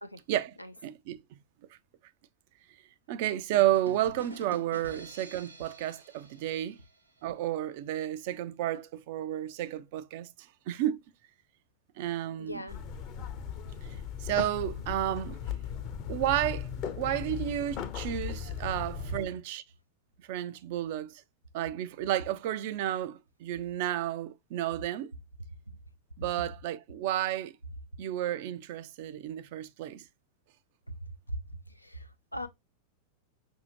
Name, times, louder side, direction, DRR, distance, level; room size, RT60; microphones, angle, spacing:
voice 1, 0.8-1.2 3.1-6.8 7.2-10.3 10.7-11.0 12.0-12.6 14.2-15.4 16.1-16.7 17.0-19.6 20.3-21.1 21.5-25.1 26.2-27.5 28.0-30.0, right 13 dB, 50° right, 0.4 m, -31 dB
sound 1, 3.5-7.3, right 1 dB, 85° right, 0.8 m, -47 dB
voice 2, 12.3-12.8 30.9-31.4 31.8-32.5, equal, 90° left, 0.5 m, -40 dB
sound 2, 12.7-19.3, left 8 dB, 40° left, 0.7 m, -37 dB
5.4 x 2.7 x 2.9 m
figure-of-eight pair, 90°, 0 cm